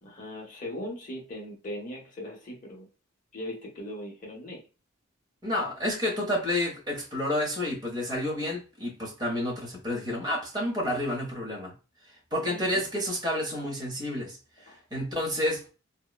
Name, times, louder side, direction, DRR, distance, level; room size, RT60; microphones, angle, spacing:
voice 1, 0.0-2.9 3.3-4.6 12.4-12.9 14.7-14.8, left 1 dB, 40° left, 0.7 m, -39 dB
voice 2, 5.4-11.7 12.3-14.4 14.7-15.6, left 1 dB, 20° right, 0.8 m, -30 dB
2.9 x 2.0 x 2.3 m
head